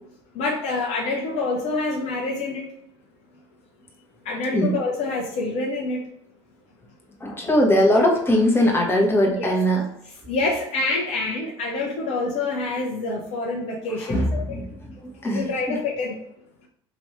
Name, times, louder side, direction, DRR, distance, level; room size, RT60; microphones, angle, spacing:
voice 1, 0.3-2.7 4.2-6.0 9.4-9.5 10.3-14.6 15.2-16.2, left 3 dB, 45° left, -2 dB, 0.9 m, -26 dB
voice 2, 7.2-9.8 14.0-15.8, equal, 15° left, 0 dB, 1.3 m, -21 dB
5.2 x 3.0 x 3.1 m, 0.74 s
hypercardioid pair, 75°, 15 cm